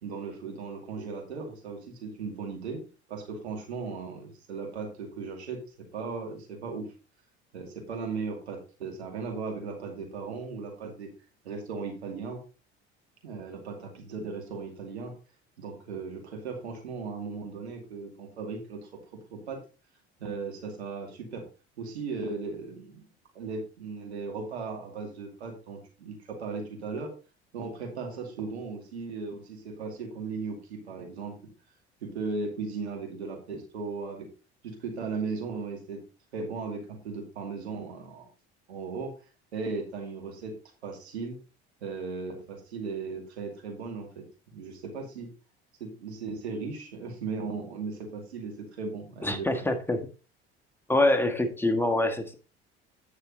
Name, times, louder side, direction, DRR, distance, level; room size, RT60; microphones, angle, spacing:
voice 1, 0.0-2.8 3.1-6.9 7.5-11.1 11.4-12.4 13.2-15.1 15.6-19.0 19.3-19.6 20.2-21.5 21.8-23.1 23.3-27.1 27.5-31.4 32.0-34.3 34.6-36.0 36.3-38.3 38.7-39.1 39.5-40.6 40.8-41.4 41.8-44.3 44.5-45.3 45.8-49.7, right 4 dB, 85° right, 2 dB, 2.3 m, -37 dB
voice 2, 49.2-50.1 50.9-52.3, left 1 dB, 5° left, 5 dB, 1.6 m, -25 dB
9.0 x 6.5 x 4.0 m, 0.33 s
hypercardioid pair, 65°, 32 cm